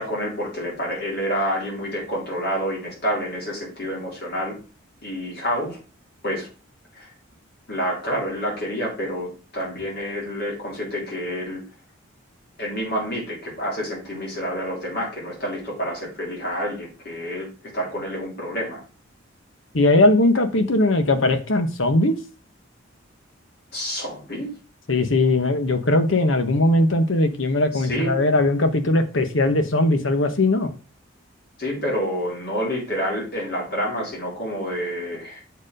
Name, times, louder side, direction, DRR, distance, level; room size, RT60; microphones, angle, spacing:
voice 1, 0.0-4.6 5.0-5.8 6.2-6.5 6.9-7.1 7.7-11.6 12.6-17.5 17.7-18.8 23.7-24.5 27.7-28.1 31.6-35.4, equal, 50° left, -3 dB, 3.5 m, -28 dB
voice 2, 19.7-22.2 24.9-30.7, left 2 dB, 70° left, 8 dB, 1.1 m, -19 dB
7.1 x 4.6 x 4.9 m, 0.34 s
head